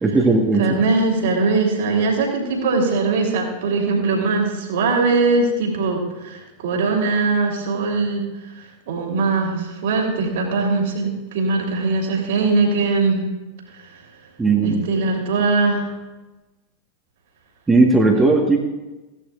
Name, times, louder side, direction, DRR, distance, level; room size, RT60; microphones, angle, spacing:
voice 1, 0.0-0.7 14.4-14.8 17.7-18.6, right 3 dB, 10° right, 0 dB, 1.5 m, -16 dB
voice 2, 0.6-8.2 8.9-13.3 14.6-15.9, right 3 dB, 55° right, 0 dB, 3.4 m, -21 dB
17.0 x 11.5 x 2.5 m, 1.1 s
figure-of-eight pair, 90°, 0 cm